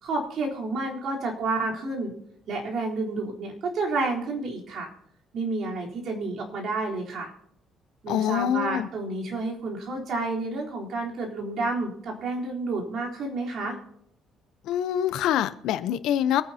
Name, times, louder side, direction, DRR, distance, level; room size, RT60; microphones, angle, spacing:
voice 1, 0.0-2.1 2.5-4.9 5.3-7.3 8.0-13.8, right 3 dB, 55° right, 3.8 m, -30 dB
voice 2, 8.1-8.9 14.7-16.4, left 10 dB, 80° left, 0.8 m, -25 dB
24.5 x 9.9 x 2.9 m
cardioid pair, 130°, 0 cm